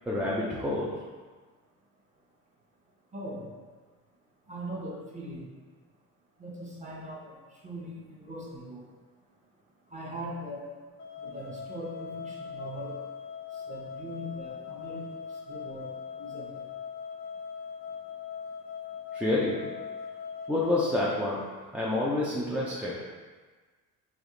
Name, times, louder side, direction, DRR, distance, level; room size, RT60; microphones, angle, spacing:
voice 1, 0.1-0.9 19.1-19.7 20.5-23.0, left 2 dB, 5° right, -7 dB, 0.4 m, -28 dB
voice 2, 3.1-3.4 4.5-5.4 6.4-7.4 7.6-8.8 9.9-10.6 11.2-13.0 13.7-15.1 15.5-15.9 16.2-16.5, equal, 20° right, -4 dB, 0.9 m, -40 dB
sound 1, 11.0-21.2, left 6 dB, 85° left, 0.8 m, -40 dB
3.4 x 2.4 x 3.7 m, 1.4 s
cardioid pair, 105°, 33 cm